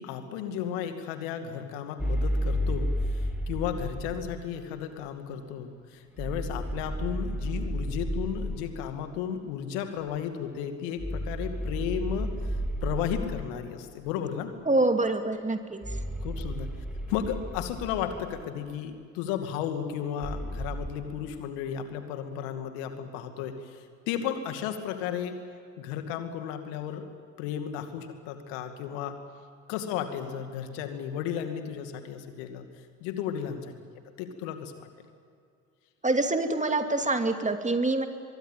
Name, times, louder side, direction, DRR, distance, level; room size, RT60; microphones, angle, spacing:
voice 1, 0.0-12.4 12.8-14.5 16.2-16.7 17.1-25.4 25.8-27.0 27.4-29.2 29.7-32.7 33.0-33.7 34.2-34.9, left 9 dB, 75° left, 7 dB, 2.4 m, -34 dB
sound 1, 2.0-4.3 6.2-8.7 11.0-13.6 15.8-18.4 20.2-20.9, equal, ahead, 3.8 m, -32 dB
voice 2, 14.7-15.8 36.0-38.1, right 2 dB, 20° right, 6 dB, 2.7 m, -25 dB
23.0 x 23.0 x 9.2 m, 2.4 s
hypercardioid pair, 55°, 38 cm